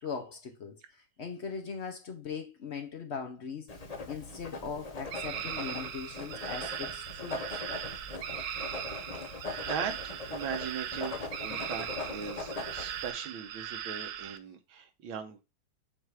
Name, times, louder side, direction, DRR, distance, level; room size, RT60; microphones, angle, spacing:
voice 1, 0.0-7.6, left 5 dB, 55° left, 0.7 m, -40 dB
Writing, 3.7-13.1, left 3 dB, 75° left, 0.3 m, -40 dB
sound 1, 5.1-14.4, right 10 dB, 70° right, 0.9 m, -39 dB
voice 2, 9.7-15.4, right 7 dB, 85° right, 1.8 m, -39 dB
7.8 x 2.6 x 4.7 m
omnidirectional pair, 2.2 m